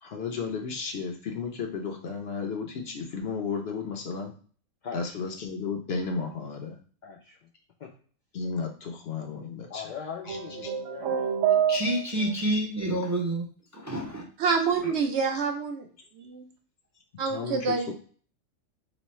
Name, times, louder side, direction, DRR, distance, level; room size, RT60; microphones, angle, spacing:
voice 1, 0.0-4.3 4.9-6.7 8.3-9.8 10.3-10.4 10.6-10.7 17.3-17.9, left 5 dB, 60° left, 3 dB, 0.7 m, -33 dB
voice 2, 4.8-5.2 7.0-7.4 7.8-7.9 9.7-11.1 14.8-15.0, left 7 dB, 80° left, 1 dB, 0.4 m, -40 dB
sound 1, 10.3-12.3, right 9 dB, 85° right, 1.0 m, -27 dB
voice 3, 11.7-13.4 13.7-14.2, right 1 dB, 20° right, -2 dB, 0.4 m, -28 dB
voice 4, 14.4-15.9 16.2-16.5 17.2-17.9, right 5 dB, 65° right, 3 dB, 0.8 m, -27 dB
3.0 x 2.0 x 4.1 m, 0.43 s
omnidirectional pair, 1.3 m